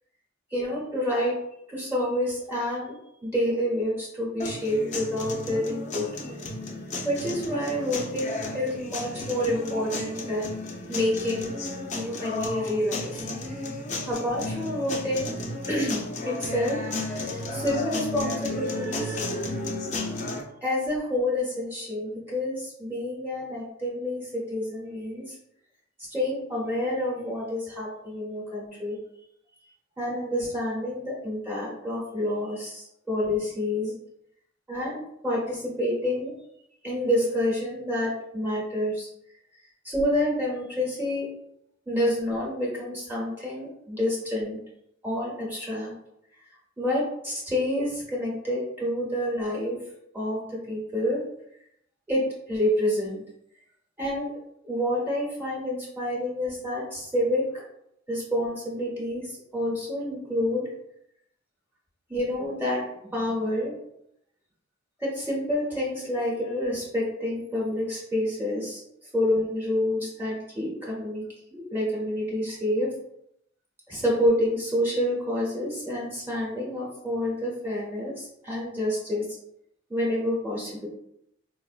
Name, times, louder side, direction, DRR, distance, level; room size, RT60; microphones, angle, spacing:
voice 1, 0.5-1.3 1.7-3.0 3.2-6.5 7.0-10.5 10.9-11.6 11.9-13.2 13.5-15.3 15.7-19.2 20.6-25.4 26.0-29.0 30.0-33.9 34.7-36.3 36.8-39.1 39.8-41.3 41.9-44.6 45.0-45.9 46.8-49.8 50.1-51.2 52.1-52.2 52.5-53.2 54.0-54.3 54.6-57.6 58.1-60.6 62.1-63.8 65.0-71.2 71.5-72.9 73.9-79.2 79.9-80.9, left 1 dB, 10° right, -4 dB, 0.8 m, -28 dB
sound 1, 4.4-20.4, left 2 dB, 35° left, 0.4 m, -33 dB
4.0 x 2.1 x 2.4 m, 0.78 s
head